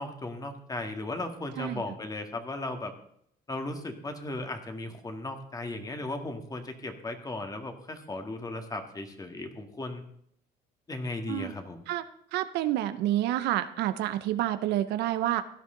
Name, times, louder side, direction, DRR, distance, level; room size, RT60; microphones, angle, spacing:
voice 1, 0.0-2.9 3.5-10.0 10.9-11.8, left 2 dB, 20° left, 6 dB, 1.9 m, -36 dB
voice 2, 12.3-15.4, right 13 dB, 85° right, 11 dB, 0.8 m, -28 dB
16.5 x 11.0 x 3.9 m, 0.68 s
cardioid pair, 110°, 17 cm